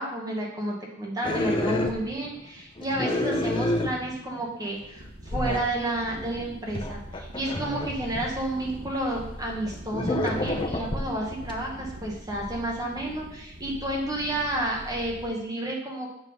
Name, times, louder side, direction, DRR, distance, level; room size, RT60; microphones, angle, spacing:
voice 1, 0.0-16.1, right 1 dB, 20° right, -1 dB, 1.1 m, -31 dB
sound 1, 1.2-2.4 2.8-4.5 4.8-4.9 5.3-5.7 6.2-9.0 9.7-11.6, left 1 dB, 25° left, 0.6 m, -29 dB
sound 2, 5.0-15.3, right 1 dB, 90° right, 1.4 m, -42 dB
7.7 x 3.7 x 5.3 m, 0.81 s
head